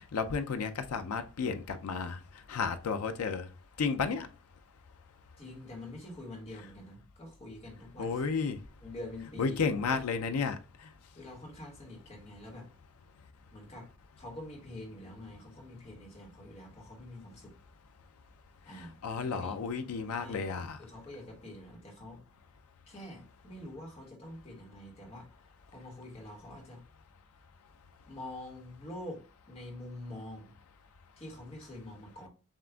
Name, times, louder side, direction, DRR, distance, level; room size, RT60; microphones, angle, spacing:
voice 1, 0.1-2.2 2.5-3.4 3.8-4.3 8.0-8.6 9.4-10.6 19.0-20.8, left 5 dB, 85° left, 0.5 m, -32 dB
voice 2, 5.4-8.2 8.8-9.6 9.9-10.0 11.1-12.7 13.5-13.9 14.2-17.5 18.6-19.0 19.3-19.6 20.1-20.5 20.8-22.2 22.9-25.3 25.7-26.8 28.1-29.2 29.5-30.5 31.2-32.3, left 1 dB, 25° left, 1.3 m, -46 dB
7.2 x 2.5 x 2.3 m
head